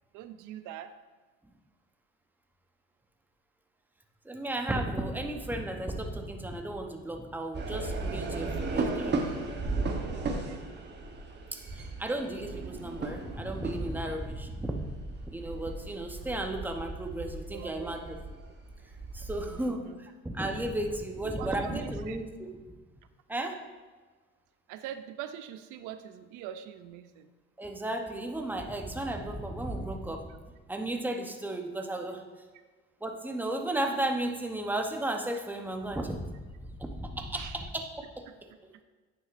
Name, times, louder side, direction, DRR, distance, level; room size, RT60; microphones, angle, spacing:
voice 1, 0.1-0.9 10.0-10.6 17.5-18.5 19.5-20.0 21.2-22.2 24.7-27.3 37.4-37.6, right 10 dB, 80° right, 11 dB, 0.4 m, -43 dB
voice 2, 4.2-9.2 11.5-14.9 15.3-18.2 19.1-22.5 23.3-23.6 27.6-30.3 30.7-32.2 33.0-36.3 36.8-38.2 38.6-38.7, right 1 dB, 5° right, 4 dB, 0.8 m, -34 dB
sound 1, 7.5-19.6, right 3 dB, 35° right, 1.0 m, -36 dB
9.5 x 6.0 x 2.5 m, 1.4 s
cardioid pair, 90°, 30 cm